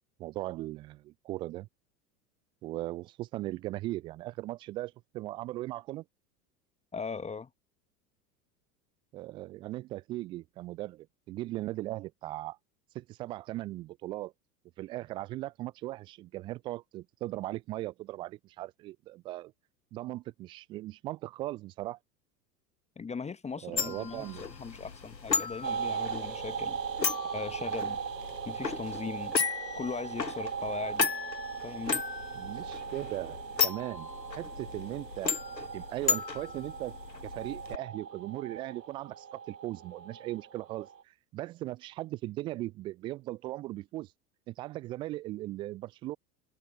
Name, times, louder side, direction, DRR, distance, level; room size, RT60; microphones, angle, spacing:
voice 1, 0.2-1.7 2.6-6.0 9.1-12.6 12.9-14.3 14.8-19.5 19.9-22.0 23.6-24.4 32.3-34.1 34.4-35.3 35.7-36.9 37.2-44.1 44.5-46.2, right 17 dB, 10° right, 0.3 m, -38 dB
voice 2, 6.9-7.5 23.0-24.3 24.6-26.8 27.3-28.0 28.5-29.3 29.8-31.1 31.6-32.0, left 5 dB, 15° left, 1.3 m, -39 dB
sound 1, 23.8-37.8, left 5 dB, 85° left, 1.5 m, -35 dB
sound 2, 25.6-41.0, right 7 dB, 75° right, 1.7 m, -39 dB
figure-of-eight pair, 85°, 50 cm